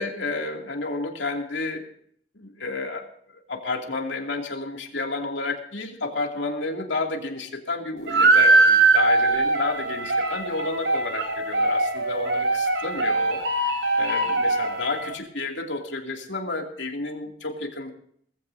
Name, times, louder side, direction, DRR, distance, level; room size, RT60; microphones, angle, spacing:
voice 1, 0.0-1.8 2.3-3.1 3.3-17.9, left 3 dB, 70° left, 2 dB, 2.6 m, -31 dB
sound 1, 8.1-15.1, right 3 dB, 75° right, 3.5 m, -21 dB
19.5 x 15.0 x 2.7 m, 0.63 s
head